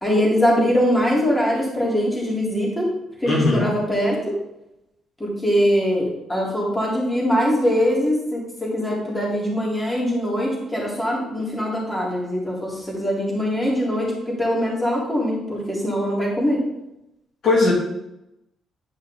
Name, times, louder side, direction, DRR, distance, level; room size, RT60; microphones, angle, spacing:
voice 1, 0.0-2.9 3.2-4.3 5.2-16.6, equal, 15° left, -4 dB, 3.5 m, -22 dB
voice 2, 3.2-3.7 17.4-17.7, left 3 dB, 65° left, -4 dB, 2.9 m, -18 dB
11.0 x 5.4 x 3.8 m, 0.87 s
cardioid pair, 90°, 0 cm